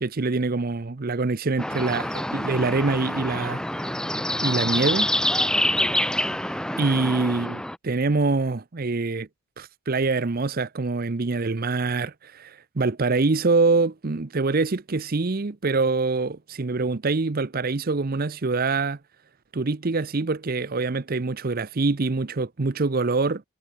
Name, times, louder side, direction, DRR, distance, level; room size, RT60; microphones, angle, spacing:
voice 1, 0.0-3.6 4.0-4.1 4.4-5.1 6.4-9.3 9.6-19.0 19.5-23.4, right 3 dB, 45° right, 0.7 m, -25 dB
sound 1, 1.6-7.8, left 1 dB, 5° left, 1.2 m, -26 dB
head